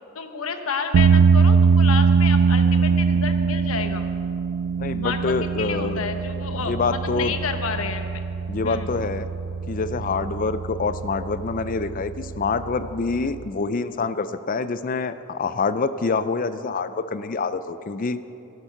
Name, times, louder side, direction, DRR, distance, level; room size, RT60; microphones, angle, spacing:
voice 1, 0.1-4.0 5.0-8.1 8.6-8.9, left 5 dB, 70° left, 7 dB, 1.0 m, -30 dB
sound 1, 0.9-13.4, right 5 dB, 70° right, 0.3 m, -22 dB
voice 2, 4.8-6.0 6.6-7.3 8.5-9.3 9.7-18.2, left 4 dB, 40° left, 12 dB, 0.4 m, -26 dB
12.5 x 11.5 x 5.8 m, 2.8 s
head